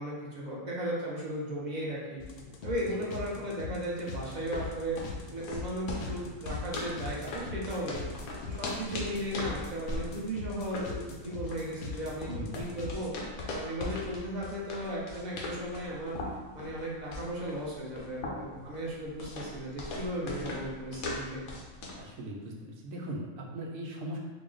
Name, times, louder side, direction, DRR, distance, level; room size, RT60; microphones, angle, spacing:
voice 1, 0.0-2.2 2.6-5.0 5.3-8.0 8.5-13.1 13.5-16.2 16.5-21.4, right 1 dB, 40° right, -4 dB, 0.7 m, -36 dB
sound 1, 2.2-12.9, left 5 dB, 65° left, 0.6 m, -41 dB
sound 2, 4.3-22.1, left 2 dB, 90° left, 1.1 m, -40 dB
voice 2, 12.3-12.6 15.3-15.6 21.9-24.2, right 1 dB, 80° right, 0 dB, 1.0 m, -40 dB
4.0 x 2.0 x 3.7 m, 1.3 s
omnidirectional pair, 1.4 m